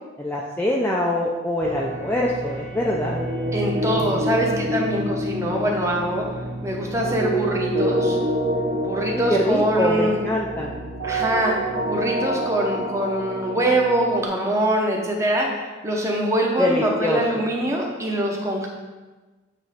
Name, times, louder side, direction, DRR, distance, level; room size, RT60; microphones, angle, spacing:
voice 1, 0.2-3.2 9.1-10.9 16.6-17.2, left 1 dB, 10° left, -3 dB, 0.4 m, -24 dB
sound 1, 1.6-14.3, right 1 dB, 75° right, 2.1 m, -27 dB
voice 2, 3.5-6.2 6.6-8.2 8.8-10.2 11.0-11.5 11.8-18.7, right 1 dB, 15° right, -1 dB, 0.9 m, -23 dB
8.7 x 3.1 x 5.1 m, 1.3 s
head